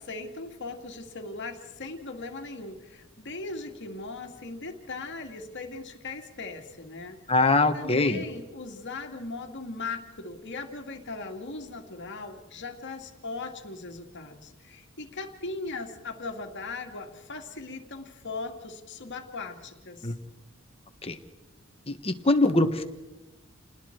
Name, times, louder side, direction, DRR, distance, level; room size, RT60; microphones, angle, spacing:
voice 1, 0.0-7.2 7.7-20.1, left 3 dB, 60° left, 4 dB, 2.4 m, -38 dB
voice 2, 7.3-8.2 20.0-20.1 21.0-21.2 21.9-22.8, left 2 dB, 30° left, 7 dB, 1.6 m, -23 dB
30.0 x 20.0 x 4.7 m, 1.1 s
head